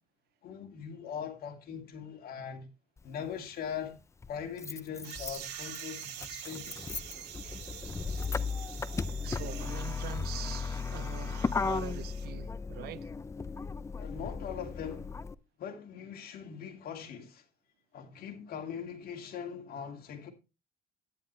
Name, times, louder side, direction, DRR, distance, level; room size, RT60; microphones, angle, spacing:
voice 1, 0.4-2.7 3.0-4.0 4.3-6.9 14.0-15.1 15.6-17.4 17.9-20.3, left 8 dB, 60° left, 2.5 m, -41 dB
Motor vehicle (road), 3.0-3.1 4.2-15.3, left 4 dB, 15° left, 0.5 m, -36 dB
sound 1, 5.0-12.3, right 10 dB, 90° right, 2.0 m, -46 dB
voice 2, 9.2-13.1, right 15 dB, 70° right, 0.6 m, -43 dB
11.5 x 10.0 x 3.2 m
cardioid pair, 110°, 17 cm